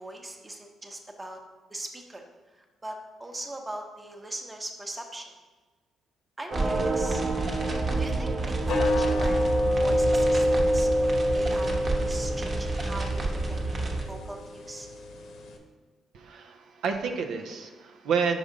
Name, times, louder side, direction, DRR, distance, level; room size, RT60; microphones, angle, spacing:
voice 1, 0.0-1.4 1.7-2.2 2.5-5.3 6.4-7.2 8.0-8.3 8.6-9.4 9.8-13.6 14.1-14.9, right 1 dB, 20° right, 3 dB, 0.9 m, -40 dB
sound 1, 6.5-14.0, right 2 dB, 40° right, 1.0 m, -29 dB
sound 2, 8.6-15.6, equal, 75° left, 0.9 m, -27 dB
voice 2, 16.1-18.4, right 6 dB, 80° right, 4 dB, 0.5 m, -29 dB
5.3 x 4.9 x 3.8 m, 1.3 s
cardioid pair, 90°, 0 cm